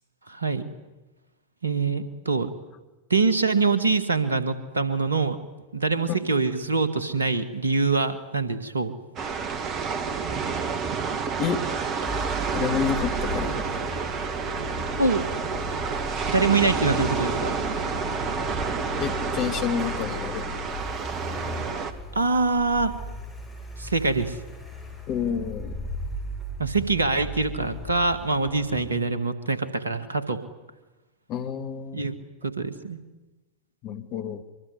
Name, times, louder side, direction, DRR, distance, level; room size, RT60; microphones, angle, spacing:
voice 1, 0.3-0.6 1.6-2.5 3.1-5.4 5.7-8.9 15.0-15.2 16.3-17.5 22.1-22.9 23.8-24.4 26.6-30.4 31.9-32.1 32.4-33.0, right 4 dB, 75° right, 13 dB, 1.9 m, -24 dB
sound 1, 9.2-21.9, right 5 dB, 35° right, 2.0 m, -29 dB
Car, 12.0-28.9, left 2 dB, 5° left, 7.9 m, -37 dB
voice 2, 12.5-13.8 19.0-20.8 25.1-25.9 31.3-32.2 33.8-34.4, left 8 dB, 35° left, 8 dB, 2.2 m, -29 dB
24.0 x 23.5 x 10.0 m, 1.1 s
figure-of-eight pair, 90°, 0 cm